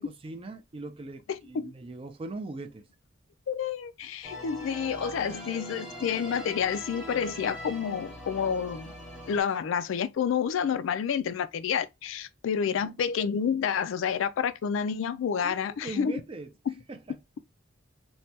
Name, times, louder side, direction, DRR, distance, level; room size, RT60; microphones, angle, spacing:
voice 1, 0.0-2.9 12.6-13.0 15.4-16.5 16.9-17.2, right 2 dB, 25° right, 0.4 m, -41 dB
voice 2, 1.3-1.7 3.5-8.9 9.3-16.1 16.7-16.8, left 7 dB, 70° left, 0.3 m, -29 dB
sound 1, 4.2-9.4, equal, ahead, 0.8 m, -42 dB
3.1 x 2.2 x 2.8 m
head